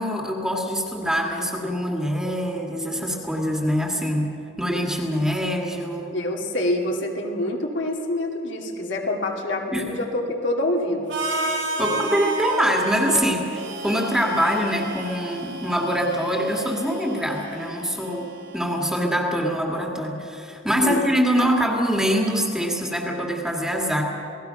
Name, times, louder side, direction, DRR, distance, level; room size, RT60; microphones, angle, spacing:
voice 1, 0.0-6.1 9.7-9.9 11.8-24.0, equal, 5° right, 0 dB, 2.0 m, -24 dB
voice 2, 6.1-11.4 20.8-21.1, left 1 dB, 65° left, 0 dB, 2.4 m, -26 dB
Harmonica, 11.1-19.0, right 2 dB, 70° right, 3.2 m, -32 dB
28.5 x 18.5 x 5.8 m, 2.8 s
head